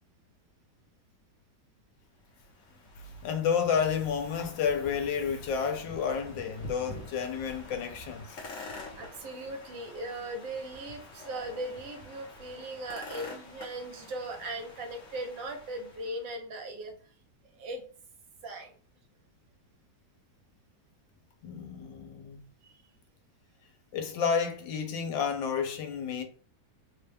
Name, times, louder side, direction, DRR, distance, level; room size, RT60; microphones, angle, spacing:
sound 1, 2.2-16.3, left 2 dB, 50° left, 1.2 m, -47 dB
voice 1, 3.2-8.6 21.4-22.5 23.9-26.2, left 7 dB, 90° left, 1.4 m, -31 dB
voice 2, 8.9-16.9 17.5-17.8 18.4-18.7 22.6-22.8, right 1 dB, 80° right, 1.6 m, -38 dB
4.1 x 2.2 x 3.3 m
omnidirectional pair, 2.0 m